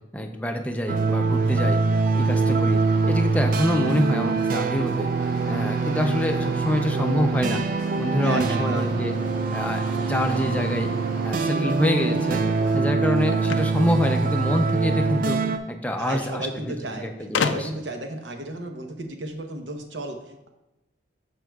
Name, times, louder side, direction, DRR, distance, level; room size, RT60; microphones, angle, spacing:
voice 1, 0.1-1.8 2.1-2.8 3.1-5.1 5.5-7.6 8.0-9.2 9.5-10.9 11.2-12.4 12.7-15.4 15.7-17.7, left 1 dB, 10° left, 3 dB, 0.5 m, -26 dB
sound 1, 0.9-15.6, right 4 dB, 45° right, 0.4 m, -24 dB
sound 2, 2.7-12.7, right 1 dB, 30° right, 2.4 m, -41 dB
voice 2, 8.2-9.1 16.0-17.1 17.4-20.2, right 2 dB, 70° right, 4 dB, 0.9 m, -33 dB
sound 3, 13.4-14.8 15.9-16.0 16.3-16.4 17.3-18.0, left 5 dB, 75° left, 0.4 m, -29 dB
12.5 x 4.7 x 2.3 m, 0.95 s
head